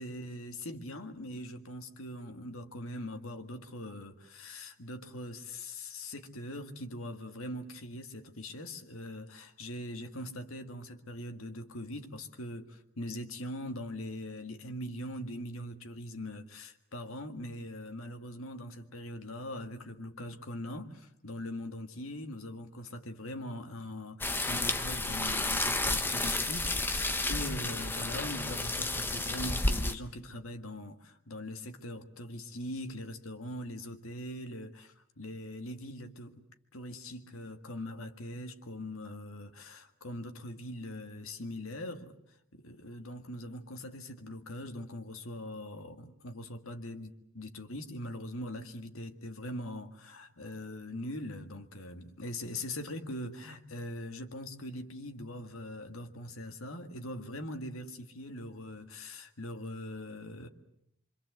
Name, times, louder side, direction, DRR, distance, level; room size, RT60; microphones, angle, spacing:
voice 1, 0.0-36.4 36.7-42.1 42.5-60.5, left 1 dB, 85° left, 1.9 m, -42 dB
Watering the garden, 24.2-29.9, left 2 dB, 10° left, 0.9 m, -31 dB
25.5 x 25.0 x 7.9 m
head